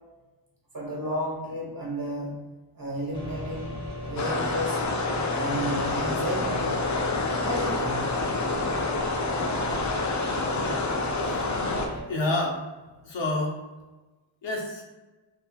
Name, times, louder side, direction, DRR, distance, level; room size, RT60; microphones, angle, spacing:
voice 1, 0.7-2.4 2.7-4.8 5.3-6.8 7.4-8.1, equal, 45° right, -4 dB, 1.4 m, -32 dB
sound 1, 3.1-12.0, left 1 dB, 10° left, 1.3 m, -37 dB
sound 2, 4.2-11.9, left 3 dB, 35° left, 0.5 m, -28 dB
voice 2, 11.3-11.8 12.0-12.6 13.0-13.6 14.4-14.8, left 2 dB, 65° left, -1 dB, 0.9 m, -29 dB
4.3 x 2.9 x 2.3 m, 1.2 s
cardioid pair, 60°, 49 cm